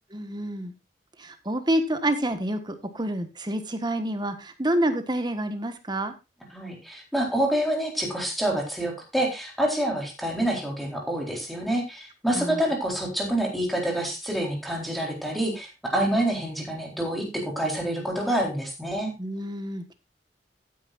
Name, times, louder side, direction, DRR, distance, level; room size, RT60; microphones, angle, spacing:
voice 1, 0.1-0.7 1.2-6.1 12.3-12.6 19.2-19.9, right 1 dB, 25° right, 9 dB, 1.4 m, -28 dB
voice 2, 6.5-19.1, right 1 dB, ahead, 1 dB, 3.9 m, -27 dB
14.5 x 9.3 x 2.5 m, 0.25 s
head